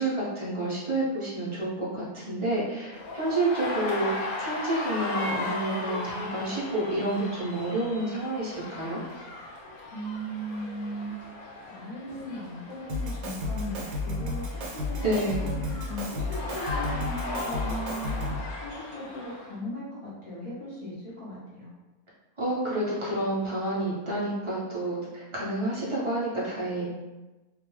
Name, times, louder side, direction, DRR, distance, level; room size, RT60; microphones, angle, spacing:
voice 1, 0.0-9.0 15.0-15.4 22.4-26.9, right 1 dB, 45° right, -8 dB, 0.4 m, -29 dB
sound 1, 2.9-19.5, left 2 dB, 85° left, 1.1 m, -37 dB
voice 2, 9.9-18.1 18.6-21.7, equal, 50° left, -10 dB, 0.3 m, -38 dB
Drum kit, 12.9-18.5, left 2 dB, 75° right, 1.0 m, -32 dB
2.4 x 2.2 x 3.0 m, 1.1 s
omnidirectional pair, 1.5 m